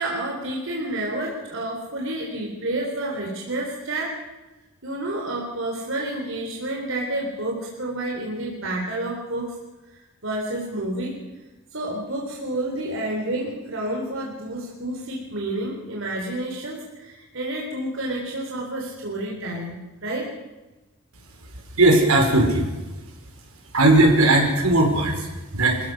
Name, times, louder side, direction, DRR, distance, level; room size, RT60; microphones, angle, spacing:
voice 1, 0.0-4.2 4.8-9.6 9.9-11.2 11.7-20.4, right 1 dB, 60° right, -1 dB, 3.9 m, -29 dB
voice 2, 21.8-22.7 23.7-25.8, right 2 dB, 80° right, 2 dB, 5.1 m, -18 dB
27.0 x 15.0 x 6.5 m, 1.1 s
head